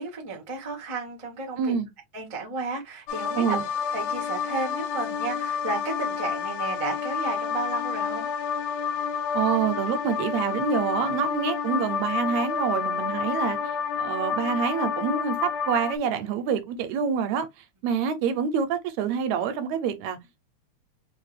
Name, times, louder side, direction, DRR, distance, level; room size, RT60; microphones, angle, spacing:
voice 1, 0.0-1.8 2.1-3.6 3.9-8.3, right 3 dB, 55° right, 0.3 m, -33 dB
voice 2, 1.6-1.9 3.4-3.7 9.3-17.5 17.8-20.2, right 7 dB, 80° right, 1.9 m, -27 dB
sound 1, 3.1-16.0, left 6 dB, 80° left, 1.7 m, -29 dB
5.1 x 2.5 x 3.2 m
omnidirectional pair, 3.3 m